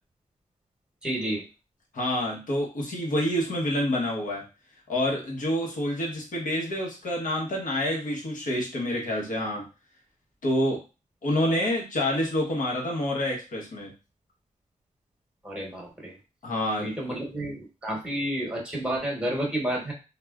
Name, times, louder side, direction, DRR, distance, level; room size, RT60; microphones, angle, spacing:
voice 1, 1.0-1.4 15.4-16.1 16.8-19.9, right 1 dB, 5° right, -1 dB, 1.0 m, -30 dB
voice 2, 1.9-4.4 4.9-9.7 10.4-10.8 11.2-13.9 16.4-17.2, left 1 dB, 80° left, -2 dB, 1.0 m, -27 dB
3.2 x 2.3 x 2.3 m, 0.30 s
wide cardioid pair, 100°, 13 cm